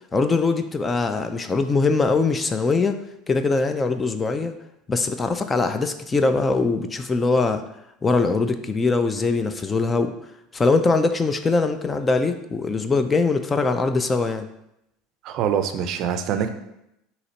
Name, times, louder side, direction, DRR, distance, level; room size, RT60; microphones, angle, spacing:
voice 1, 0.1-3.0 3.3-4.5 4.9-7.6 8.0-10.1 10.5-14.5, left 3 dB, 20° left, 8 dB, 0.3 m, -22 dB
voice 2, 15.2-16.5, right 8 dB, 55° right, 8 dB, 0.4 m, -24 dB
4.0 x 2.9 x 4.3 m, 0.84 s
supercardioid pair, 115°, 0 cm